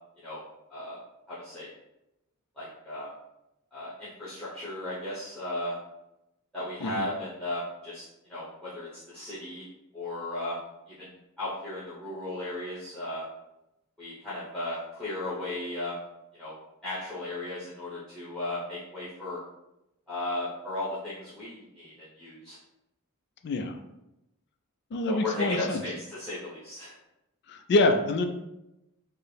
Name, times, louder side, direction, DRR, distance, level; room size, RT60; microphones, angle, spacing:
voice 1, 1.3-1.7 2.6-3.1 3.7-5.7 6.5-8.0 8.3-9.6 9.9-10.6 10.9-11.1 11.4-13.2 14.0-16.0 16.4-16.5 16.8-19.4 20.1-22.6 25.1-26.9, left 1 dB, 5° left, -10 dB, 1.0 m, -35 dB
voice 2, 23.4-23.7 24.9-25.8 27.5-28.2, left 2 dB, 50° left, 6 dB, 0.3 m, -26 dB
4.4 x 2.0 x 3.3 m, 0.90 s
head